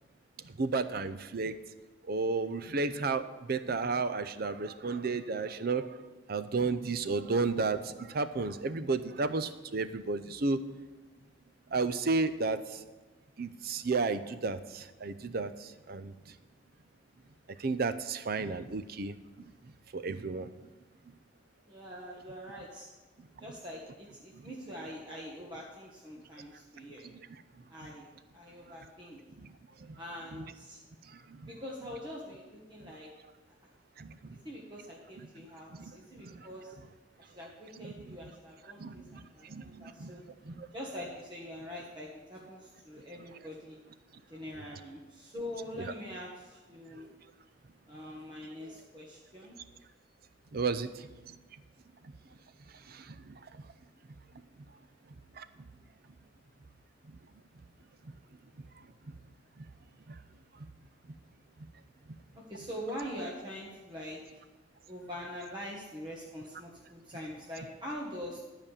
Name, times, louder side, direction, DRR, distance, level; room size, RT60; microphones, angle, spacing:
voice 1, 0.6-1.5 2.1-5.9 6.3-10.6 11.7-12.6 13.4-15.5 15.9-16.1 17.6-19.1 19.9-20.5 31.4-31.5 34.0-34.4 35.8-35.9 36.2-36.3 37.8-38.2 38.8-39.2 39.5-40.1 40.5-40.7 45.8-45.9 50.5-50.9 52.9-53.0 55.4-55.5, right 4 dB, 55° right, 12 dB, 0.6 m, -32 dB
voice 2, 21.7-22.9 23.4-27.0 27.7-28.1 28.3-29.2 30.0-30.8 31.5-33.1 34.4-36.7 37.2-39.1 39.3-40.2 40.7-43.8 44.3-47.1 47.9-49.6 62.5-64.2 64.9-68.4, equal, 25° right, -4 dB, 1.4 m, -44 dB
12.5 x 5.2 x 7.2 m, 1.2 s
head